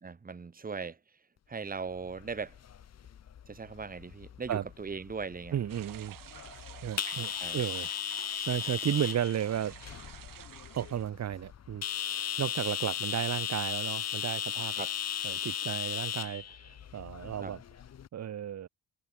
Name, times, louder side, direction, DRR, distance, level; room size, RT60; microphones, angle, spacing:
voice 1, 0.0-1.0 1.5-2.6 3.5-5.6 7.4-7.6 14.8-14.9 17.4-17.5, right 5 dB, 25° right, 2.4 m, -39 dB
sound 1, 2.0-18.1, left 9 dB, 50° left, 1.7 m, -37 dB
voice 2, 5.5-6.2 6.8-7.9 8.4-9.8 10.7-14.8 15.2-17.6 18.1-18.7, right 10 dB, 50° right, 1.4 m, -34 dB
sound 2, 5.7-11.1, right 11 dB, 70° right, 4.0 m, -50 dB
cardioid pair, 140°, 34 cm